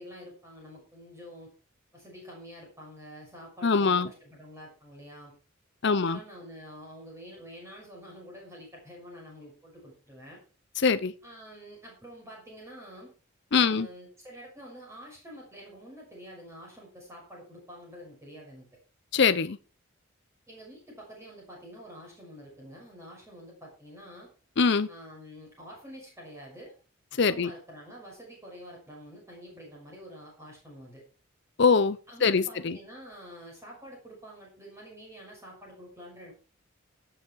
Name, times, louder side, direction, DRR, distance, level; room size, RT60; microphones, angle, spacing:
voice 1, 0.0-1.5 1.9-5.3 5.8-10.4 11.2-13.1 13.5-18.7 20.5-24.3 24.9-26.7 27.1-31.0 32.1-36.3, equal, 15° right, -2 dB, 6.2 m, -47 dB
voice 2, 3.6-4.1 5.8-6.2 10.8-11.1 13.5-13.9 19.1-19.6 24.6-24.9 27.2-27.5 31.6-32.8, left 5 dB, 55° left, 12 dB, 0.6 m, -23 dB
17.5 x 7.2 x 4.7 m, 0.35 s
head